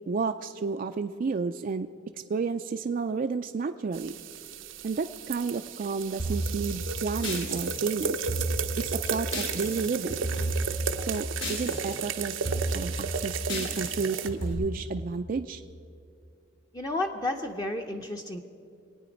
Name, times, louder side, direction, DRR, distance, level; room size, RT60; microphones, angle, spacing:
voice 1, 0.1-1.9 2.3-4.2 4.8-8.2 8.8-10.3 11.0-12.4 12.7-15.6, right 4 dB, 45° right, 7 dB, 0.3 m, -31 dB
sound 1, 3.9-14.3, right 6 dB, 80° right, 0.7 m, -34 dB
sound 2, 6.2-9.9 10.1-11.9 12.2-14.5, right 1 dB, 75° left, 3.6 m, -32 dB
voice 2, 16.7-18.4, left 2 dB, 20° left, 3 dB, 0.6 m, -31 dB
24.0 x 9.3 x 5.1 m, 2.5 s
head